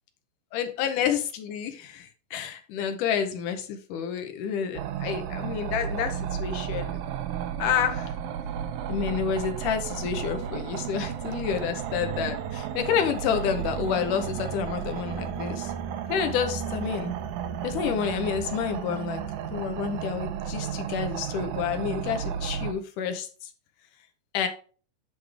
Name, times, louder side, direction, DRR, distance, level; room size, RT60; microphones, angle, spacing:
voice 1, 0.5-7.0 7.6-8.1 8.9-15.7 16.1-17.1 17.6-19.2 19.5-23.5 24.3-24.5, left 8 dB, 80° left, 6 dB, 2.5 m, -29 dB
sound 1, 4.7-22.7, right 9 dB, 75° right, 2.0 m, -33 dB
10.0 x 3.5 x 4.9 m, 0.39 s
omnidirectional pair, 3.7 m